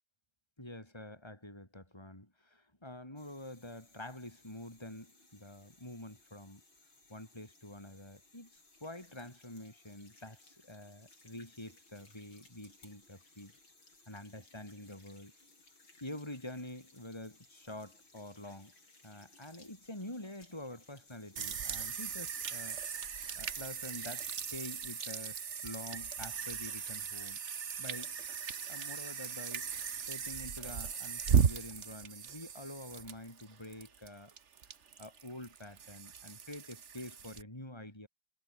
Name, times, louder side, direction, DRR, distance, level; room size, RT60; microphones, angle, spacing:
voice 1, 0.6-6.6 7.1-13.5 14.1-15.3 16.0-18.7 19.0-22.8 23.4-27.4 27.8-28.4 28.7-29.7 30.1-34.3 35.0-38.1, left 1 dB, 10° left, 6.0 m, -47 dB
sound 1, 3.2-22.1, left 2 dB, 80° left, 8.7 m, -63 dB
sound 2, 21.4-37.4, right 7 dB, 40° right, 1.3 m, -37 dB
omnidirectional pair, 2.1 m